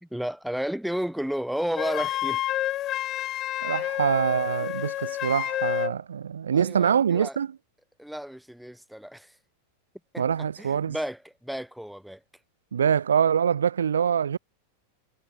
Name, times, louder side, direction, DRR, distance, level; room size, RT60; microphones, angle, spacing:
voice 1, 0.0-2.4 6.5-7.4 8.0-9.3 10.1-12.2, equal, ahead, 1.1 m, -32 dB
Wind instrument woodwind instrument, 1.8-6.0, left 14 dB, 35° left, 0.9 m, -29 dB
voice 2, 3.6-7.5 10.2-11.0 12.7-14.4, right 8 dB, 70° right, 2.1 m, -24 dB
figure-of-eight pair, 90°, 0 cm